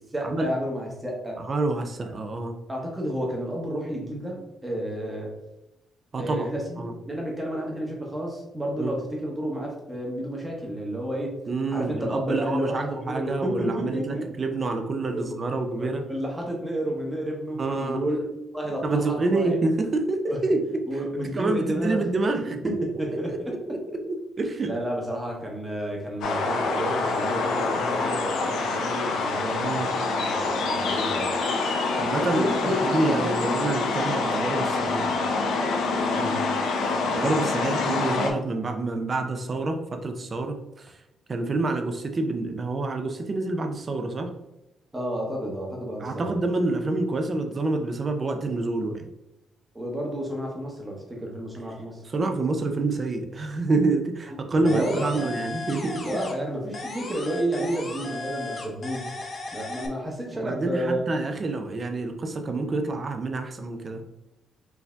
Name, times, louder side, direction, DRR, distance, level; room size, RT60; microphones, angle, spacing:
voice 1, 0.1-1.4 2.0-2.1 2.7-5.3 6.2-11.4 11.7-14.3 15.1-15.4 15.8-19.6 20.9-22.1 22.6-23.6 24.6-31.3 32.1-33.5 36.1-36.5 44.9-46.3 49.7-52.0 54.6-55.4 56.1-59.1 59.5-61.0, equal, 10° right, -1 dB, 0.9 m, -31 dB
voice 2, 1.4-2.6 6.1-6.5 6.8-6.9 8.8-8.9 11.5-16.0 17.6-18.0 18.8-21.0 21.3-24.7 29.6-29.9 31.9-35.2 36.8-41.0 41.3-44.3 46.0-49.0 52.0-56.2 60.4-64.0, right 3 dB, 30° right, 5 dB, 0.5 m, -27 dB
sound 1, 26.2-38.3, left 3 dB, 80° left, 0.7 m, -26 dB
sound 2, 54.7-56.5 56.7-59.9, left 3 dB, 30° left, 0.6 m, -36 dB
4.6 x 2.7 x 3.4 m, 0.93 s
cardioid pair, 150°, 0 cm